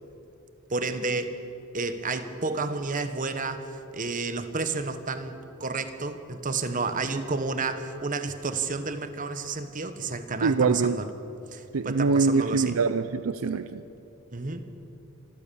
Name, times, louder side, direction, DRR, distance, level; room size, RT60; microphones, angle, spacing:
voice 1, 0.7-1.4 1.7-11.1 11.5-12.8 14.3-14.6, right 3 dB, 40° right, 10 dB, 1.2 m, -31 dB
voice 2, 10.4-11.0 11.7-13.8, right 4 dB, 80° right, 12 dB, 0.5 m, -24 dB
25.5 x 14.5 x 7.0 m, 2.9 s
head